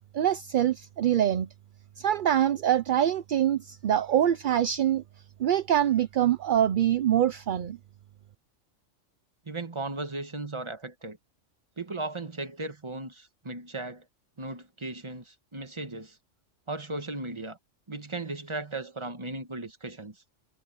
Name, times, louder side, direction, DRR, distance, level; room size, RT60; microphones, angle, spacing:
voice 1, 0.1-1.5 2.0-5.0 5.4-7.8, right 10 dB, 55° right, 0.6 m, -24 dB
voice 2, 9.4-11.2 11.8-14.0 14.4-16.2 16.7-17.6 17.9-20.2, right 2 dB, 25° right, 1.4 m, -36 dB
omnidirectional pair, 1.3 m